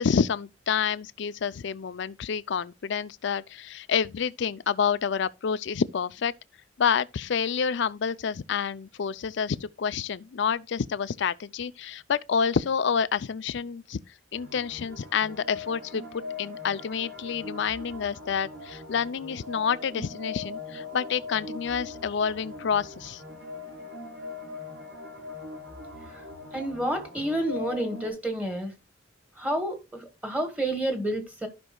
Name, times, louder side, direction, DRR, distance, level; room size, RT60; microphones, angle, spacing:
voice 1, 0.0-6.3 6.8-14.0 14.3-23.2, left 6 dB, 65° left, 0.4 m, -28 dB
sound 1, 14.3-28.1, left 3 dB, 80° right, 4.2 m, -41 dB
voice 2, 26.5-28.7 29.4-31.5, right 1 dB, 10° right, 1.3 m, -29 dB
15.0 x 5.3 x 2.3 m
head